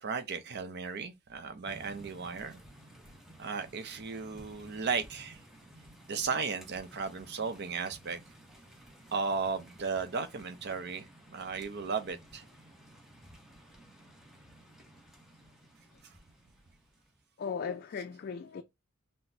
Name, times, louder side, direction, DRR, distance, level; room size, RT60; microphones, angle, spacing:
voice 1, 0.0-2.6 3.4-5.4 6.1-8.2 9.1-12.4, right 5 dB, 50° right, 0.6 m, -35 dB
sound 1, 1.6-17.2, right 1 dB, ahead, 0.8 m, -55 dB
voice 2, 17.4-18.6, left 6 dB, 45° left, 0.3 m, -37 dB
5.8 x 2.0 x 2.7 m
head